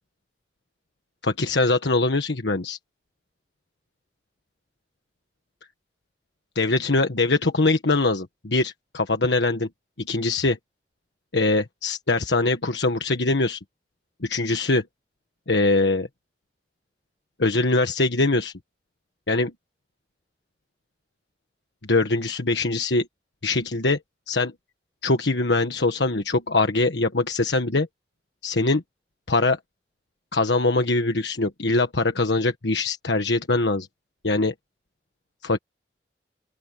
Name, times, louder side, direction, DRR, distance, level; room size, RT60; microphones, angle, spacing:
voice 1, 1.2-2.8 6.5-9.7 10.0-10.6 11.3-13.6 14.2-14.8 15.5-16.1 17.4-18.5 19.3-19.5 21.9-23.1 23.4-24.0 24.3-24.5 25.0-27.9 28.4-28.8 29.3-29.6 30.3-33.9 34.2-34.5 35.4-35.6, left 2 dB, 90° left, 1.5 m, -22 dB
open air
head